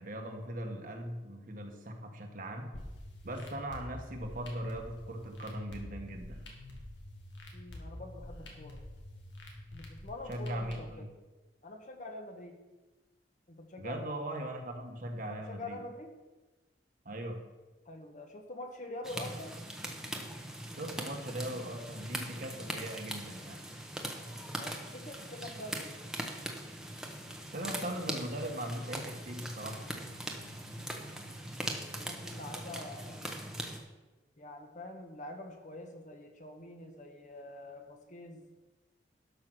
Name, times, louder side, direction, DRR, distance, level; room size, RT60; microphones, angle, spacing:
voice 1, 0.0-2.7 3.2-6.4 10.3-11.1 13.8-15.8 17.0-17.5 20.8-23.6 27.5-29.8, right 1 dB, 50° right, 3 dB, 1.4 m, -39 dB
sound 1, 2.7-10.7, left 1 dB, 90° left, 2.2 m, -47 dB
voice 2, 7.5-8.8 9.7-11.1 11.6-12.6 13.5-14.1 15.2-16.1 17.8-19.6 24.6-26.0 31.8-33.3 34.4-38.4, left 2 dB, 45° left, 4 dB, 1.4 m, -46 dB
sound 2, 19.0-33.8, right 1 dB, 5° right, 1.1 m, -41 dB
12.0 x 5.8 x 6.2 m, 1.2 s
head